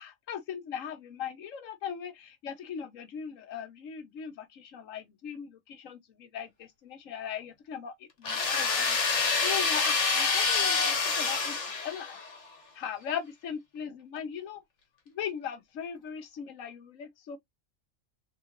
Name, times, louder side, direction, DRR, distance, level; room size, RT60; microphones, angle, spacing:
voice 1, 0.0-12.3 12.8-14.6 15.1-17.4, left 8 dB, 85° left, 1.2 m, -39 dB
sound 1, 8.2-12.3, left 4 dB, 65° left, 1.5 m, -27 dB
3.7 x 3.6 x 2.9 m
omnidirectional pair, 1.3 m